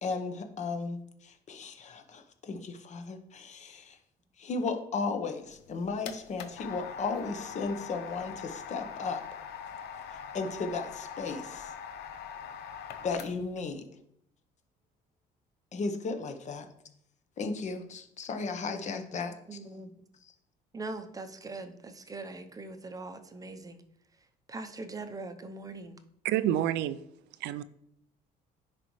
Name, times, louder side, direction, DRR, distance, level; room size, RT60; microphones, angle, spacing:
voice 1, 0.0-1.0 1.2-4.0 4.4-9.2 10.3-11.7 13.0-13.8 15.7-16.7 17.4-19.3, left 4 dB, 45° left, 7 dB, 0.9 m, -35 dB
sound 1, 5.5-13.6, left 7 dB, 75° left, 0.8 m, -42 dB
voice 2, 19.5-20.0 20.7-23.8 24.5-26.0, right 3 dB, 20° right, 8 dB, 0.7 m, -41 dB
voice 3, 26.2-27.0 27.4-27.6, right 12 dB, 85° right, 15 dB, 0.4 m, -28 dB
9.9 x 4.1 x 3.1 m, 0.72 s
cardioid pair, 110°, 17 cm